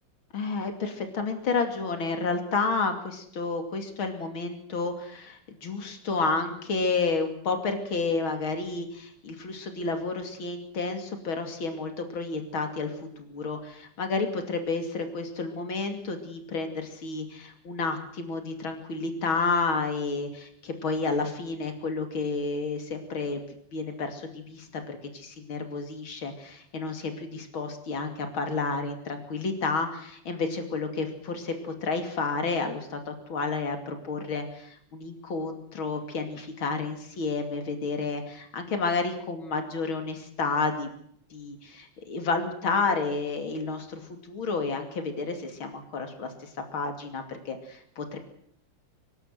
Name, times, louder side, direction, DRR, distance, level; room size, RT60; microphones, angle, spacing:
voice 1, 0.3-23.4 23.7-40.9 41.3-44.0 44.3-46.3 46.7-48.2, left 4 dB, 85° left, 6 dB, 3.5 m, -30 dB
24.5 x 12.5 x 9.4 m, 0.66 s
omnidirectional pair, 2.2 m